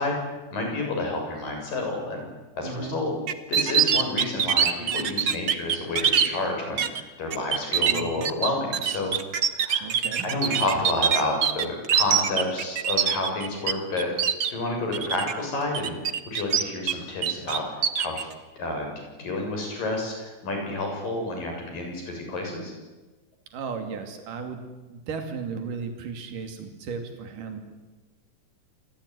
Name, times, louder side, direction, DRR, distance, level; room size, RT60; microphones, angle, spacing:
voice 1, 0.0-2.2 2.5-3.1 3.5-9.1 9.4-9.9 10.2-14.1 14.5-16.0 16.3-17.7 18.0-18.3 18.5-18.9 19.2-22.7, left 2 dB, 90° left, 2 dB, 8.9 m, -29 dB
voice 2, 2.6-3.0 7.9-8.3 9.8-10.3 23.5-24.6 24.9-27.6, right 5 dB, 75° right, 6 dB, 4.3 m, -35 dB
sound 1, 3.3-6.3 6.8-7.0 7.3-13.7 14.0-14.5 14.9-15.3 15.7-16.9 17.2-18.2, right 8 dB, 55° right, 1.2 m, -23 dB
27.5 x 21.5 x 9.7 m, 1.2 s
omnidirectional pair, 3.8 m